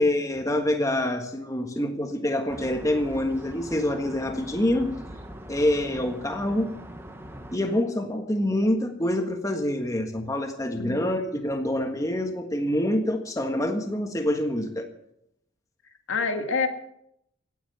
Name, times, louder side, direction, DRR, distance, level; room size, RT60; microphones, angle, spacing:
voice 1, 0.0-4.9 5.5-6.7 7.5-14.9, left 1 dB, 15° left, 4 dB, 1.5 m, -26 dB
sound 1, 2.5-7.6, equal, 10° right, 1.3 m, -42 dB
voice 2, 16.1-16.7, left 4 dB, 75° left, 5 dB, 2.1 m, -26 dB
17.5 x 10.0 x 7.1 m, 0.76 s
head